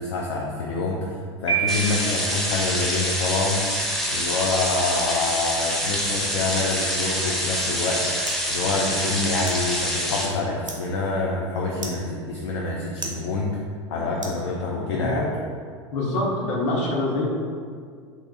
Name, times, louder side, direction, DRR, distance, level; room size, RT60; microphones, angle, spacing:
voice 1, 0.0-3.6 4.1-13.6 13.9-15.3, left 3 dB, 60° left, -2 dB, 0.4 m, -27 dB
Piano, 1.5-2.4, right 7 dB, 80° left, 1.5 m, -26 dB
sound 1, 1.7-10.3, equal, ahead, 0.4 m, -26 dB
sound 2, 7.4-15.0, right 1 dB, 90° right, 0.5 m, -42 dB
voice 2, 14.8-15.3 15.9-17.2, left 2 dB, 45° left, -3 dB, 0.8 m, -25 dB
3.0 x 2.4 x 3.8 m, 2.1 s
figure-of-eight pair, 80°, 16 cm